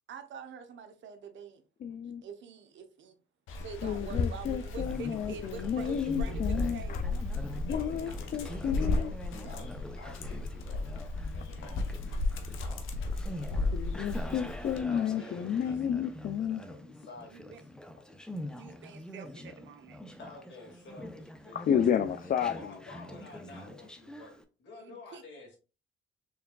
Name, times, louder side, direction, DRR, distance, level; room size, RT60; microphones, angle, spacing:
voice 1, 0.1-1.6 2.2-3.2 3.6-7.2 17.3-17.6 18.6-20.0 24.8-25.2, right 6 dB, 70° right, 0.8 m, -46 dB
voice 2, 1.8-2.2 3.8-7.0 7.7-9.1 13.7-16.6 21.5-22.8, left 8 dB, 45° left, 0.4 m, -31 dB
Dog, 3.5-14.8, left 3 dB, 85° left, 0.8 m, -34 dB
Conversation, 4.7-24.4, equal, 5° left, 0.6 m, -45 dB
voice 3, 7.6-11.0 11.3-11.9 14.9-16.1 16.5-17.7 20.2-21.7 22.5-25.6, left 3 dB, 65° left, 2.1 m, -50 dB
4.6 x 3.4 x 2.3 m
cardioid pair, 90°, 20 cm